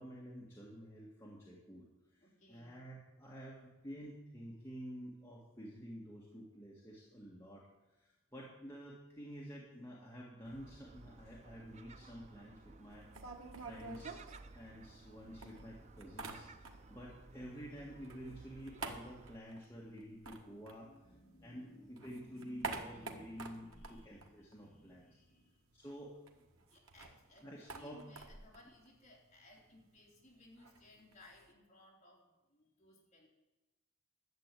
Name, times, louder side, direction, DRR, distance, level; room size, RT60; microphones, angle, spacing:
voice 1, 0.0-14.2 14.5-21.2 21.4-25.2 25.7-26.2 27.4-28.2 28.6-28.7, equal, 10° left, -5 dB, 1.8 m, -50 dB
voice 2, 2.2-2.8 20.3-25.6 26.6-33.3, left 1 dB, 30° left, -2 dB, 3.3 m, -61 dB
Gull seagull, 10.4-19.4, right 3 dB, 30° right, 0.4 m, -57 dB
sound 1, 12.9-15.1 15.4-17.0 17.3-21.5 21.8-25.1 25.4-25.5 25.7-31.5, right 3 dB, 75° right, 1.5 m, -49 dB
11.5 x 7.6 x 9.0 m, 1.1 s
head